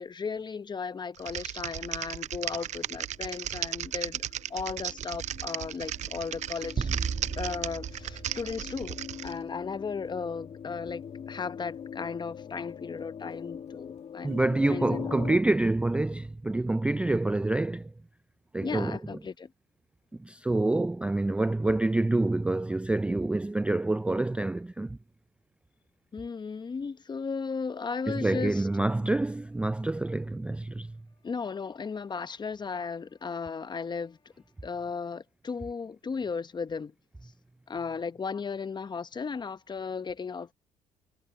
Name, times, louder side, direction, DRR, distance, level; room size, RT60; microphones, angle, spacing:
voice 1, 0.0-4.2 4.5-6.9 7.4-14.3 14.7-15.2 18.6-19.5 26.1-28.7 31.2-34.2 34.6-36.9 37.2-37.3 37.7-40.5, left 5 dB, 30° left, 1.0 m, -35 dB
Typing, 1.2-9.3, right 11 dB, 55° right, 0.5 m, -36 dB
sound 1, 2.3-15.4, left 7 dB, 50° left, 2.2 m, -43 dB
sound 2, 6.8-9.4, right 5 dB, 40° right, 2.0 m, -35 dB
voice 2, 14.2-17.9 18.5-19.0 20.3-25.0 28.1-30.9, right 2 dB, 10° right, 0.3 m, -27 dB
supercardioid pair, 70°, 14 cm